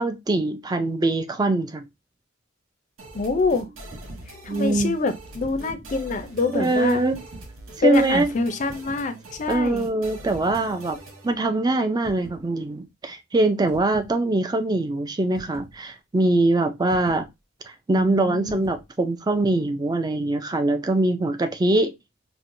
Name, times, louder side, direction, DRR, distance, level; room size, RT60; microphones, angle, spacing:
voice 1, 0.0-1.9 4.5-4.9 6.5-7.2 7.8-8.3 9.5-11.0 11.2-17.2 17.7-21.9, right 2 dB, 20° right, 0.4 m, -23 dB
sound 1, 3.0-11.3, right 1 dB, 85° right, 0.8 m, -42 dB
voice 2, 3.1-3.7 4.4-7.0 7.8-9.9 17.9-18.6, left 4 dB, 40° left, 0.5 m, -25 dB
sound 2, 3.9-4.3 5.2-5.9 7.1-7.5 8.6-9.1 10.3-10.7 12.0-12.5 13.7-14.1 15.3-15.8 16.9-17.3 18.4-18.9, right 2 dB, 50° right, 1.1 m, -43 dB
4.4 x 2.1 x 2.5 m
head